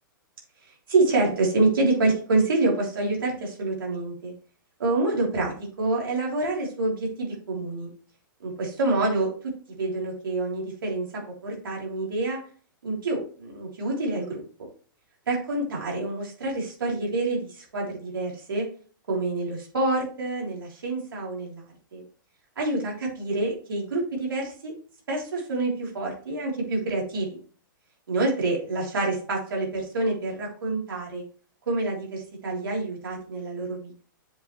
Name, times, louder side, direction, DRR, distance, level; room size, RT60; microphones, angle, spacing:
voice 1, 0.9-4.3 4.8-7.9 8.4-9.3 9.8-11.0 11.4-12.4 12.8-14.4 15.3-18.6 19.1-21.6 21.9-22.0 22.5-24.7 25.1-27.4 28.1-31.2 31.7-34.0, right 2 dB, 85° right, -2 dB, 3.5 m, -27 dB
7.6 x 5.5 x 3.2 m, 0.41 s
hypercardioid pair, 140°, 11 cm